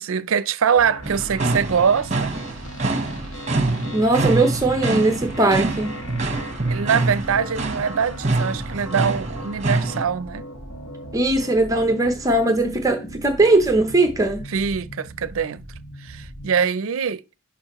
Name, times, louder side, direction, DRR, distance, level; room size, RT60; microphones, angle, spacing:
voice 1, 0.0-2.3 6.7-10.5 14.5-15.6 16.0-17.2, right 6 dB, 75° right, 0.5 m, -23 dB
sound 1, 0.8-16.6, equal, 80° left, 1.4 m, -37 dB
sound 2, 1.0-10.0, right 2 dB, 35° right, 1.0 m, -26 dB
voice 2, 3.9-5.9 11.1-14.4, right 2 dB, 15° right, 0.6 m, -19 dB
11.0 x 4.2 x 3.0 m
head